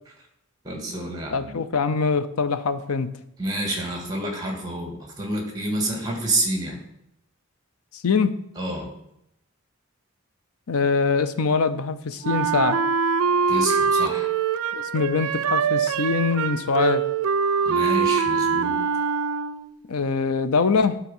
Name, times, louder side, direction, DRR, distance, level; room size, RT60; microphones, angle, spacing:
voice 1, 0.6-1.5 3.4-6.8 8.6-8.9 13.5-14.3 17.6-18.8, right 1 dB, 20° right, 1 dB, 1.8 m, -28 dB
voice 2, 1.3-3.1 7.9-8.4 10.7-12.8 14.7-17.1 19.9-21.0, left 4 dB, 85° left, 12 dB, 0.6 m, -23 dB
Wind instrument woodwind instrument, 12.2-19.8, right 6 dB, 80° right, 0.4 m, -23 dB
12.0 x 4.1 x 5.5 m, 0.81 s
head